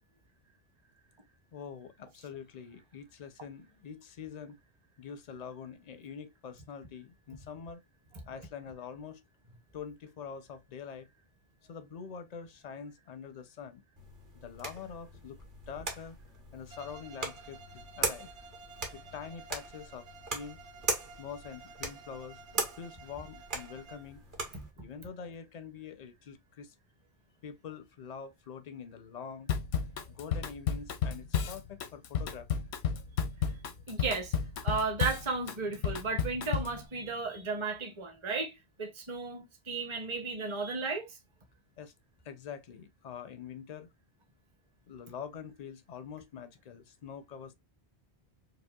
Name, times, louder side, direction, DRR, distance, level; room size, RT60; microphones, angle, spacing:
voice 1, 1.5-4.6 5.0-7.8 8.3-9.2 9.7-11.1 11.7-13.8 14.3-15.4 15.7-16.2 16.5-18.3 18.9-20.1 20.3-20.6 21.2-24.2 24.8-26.7 27.4-29.5 30.1-32.6 41.8-41.9 42.2-43.9 44.9-47.5, left 7 dB, 50° left, 0.5 m, -45 dB
sound 1, 14.0-24.7, right 3 dB, 50° right, 1.1 m, -40 dB
Bowed string instrument, 16.7-24.2, right 4 dB, 75° right, 1.1 m, -53 dB
Drum kit / Drum, 29.5-36.8, left 7 dB, 85° left, 0.9 m, -32 dB
voice 2, 33.9-34.3 34.6-41.2, right 4 dB, 30° right, 0.8 m, -34 dB
4.8 x 2.1 x 2.2 m
omnidirectional pair, 1.1 m